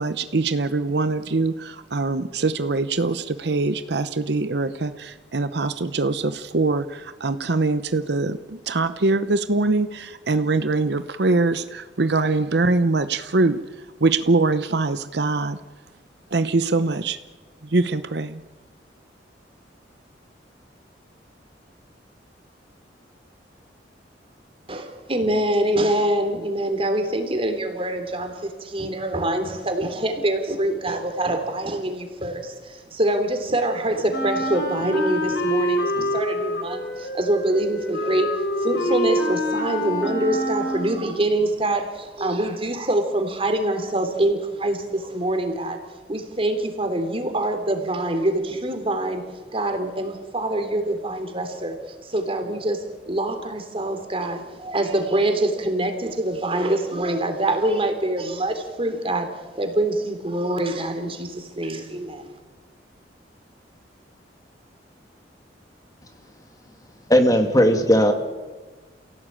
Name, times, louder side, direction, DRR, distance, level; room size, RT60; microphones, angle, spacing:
voice 1, 0.0-13.6 14.0-15.6 16.3-17.2 17.7-18.4, right 3 dB, 65° right, 12 dB, 0.8 m, -23 dB
voice 2, 24.7-45.8 46.1-51.8 52.0-62.3, right 1 dB, 30° right, 6 dB, 3.4 m, -25 dB
Wind instrument woodwind instrument, 34.1-41.1, equal, 65° left, 4.3 m, -26 dB
voice 3, 67.1-68.1, equal, 20° left, 6 dB, 2.3 m, -16 dB
28.5 x 17.0 x 8.8 m, 1.3 s
head